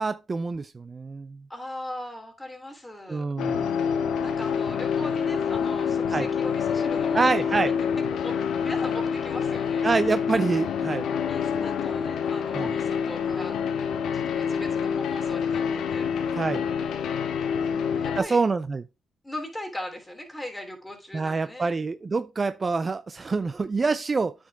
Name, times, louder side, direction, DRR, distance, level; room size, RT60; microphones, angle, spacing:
voice 1, 0.0-1.4 3.1-3.7 6.1-6.3 7.1-7.7 9.8-11.1 12.5-12.7 16.3-16.6 18.2-18.8 21.1-24.3, right 4 dB, 35° right, 0.4 m, -26 dB
voice 2, 1.5-3.3 3.7-3.8 4.2-7.2 7.5-9.9 11.3-13.6 14.1-16.1 17.6-18.4 19.2-21.7, left 1 dB, 10° left, 3.0 m, -39 dB
sound 1, 3.4-18.2, left 7 dB, 75° left, 0.9 m, -27 dB
9.1 x 5.1 x 3.5 m
cardioid pair, 80°, 0 cm